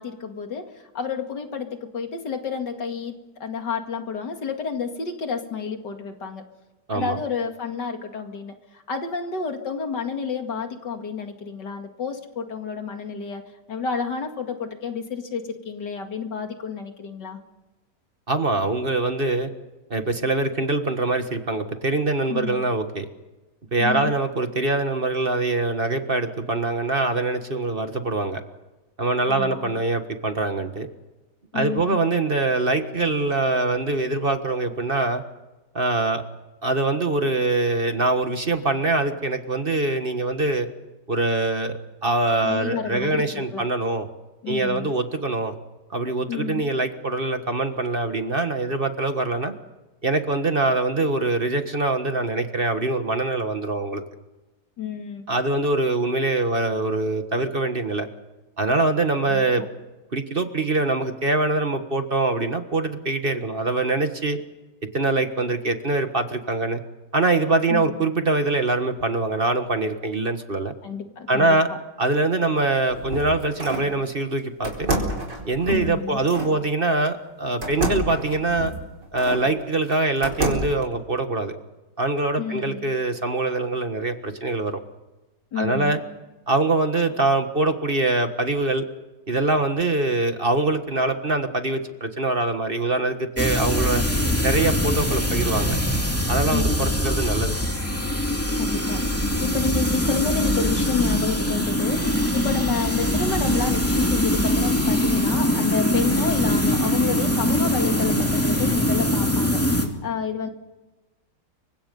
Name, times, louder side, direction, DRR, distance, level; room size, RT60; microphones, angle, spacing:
voice 1, 0.0-3.1 3.4-6.4 6.9-13.4 13.7-17.4 22.3-22.6 23.8-24.1 29.2-29.8 31.5-32.0 42.4-43.6 44.4-44.9 46.3-46.6 54.8-55.2 59.3-59.5 67.7-68.0 70.8-71.8 75.7-76.2 82.4-82.9 85.5-86.0 96.5-97.0 98.6-99.0 99.4-110.5, left 6 dB, 85° left, 5 dB, 2.7 m, -30 dB
voice 2, 18.3-19.5 19.9-23.1 23.7-28.4 29.0-30.9 31.5-35.2 35.7-36.2 36.6-40.7 41.1-44.1 44.5-45.6 45.9-49.5 50.0-54.0 55.3-58.1 58.6-59.6 60.1-64.4 64.9-66.8 67.1-70.7 71.3-71.7 72.0-74.9 75.4-78.7 79.1-81.6 82.0-84.8 85.6-86.0 86.5-88.9 89.3-94.0 94.4-95.8 96.3-97.6, right 2 dB, 35° right, 7 dB, 1.7 m, -23 dB
sound 1, 72.6-73.9 74.6-76.5 77.6-79.5 79.9-80.8, right 2 dB, 85° right, 5.1 m, -28 dB
sound 2, 93.4-109.9, equal, 10° left, 2.7 m, -23 dB
29.0 x 24.5 x 5.5 m, 1.1 s
omnidirectional pair, 1.8 m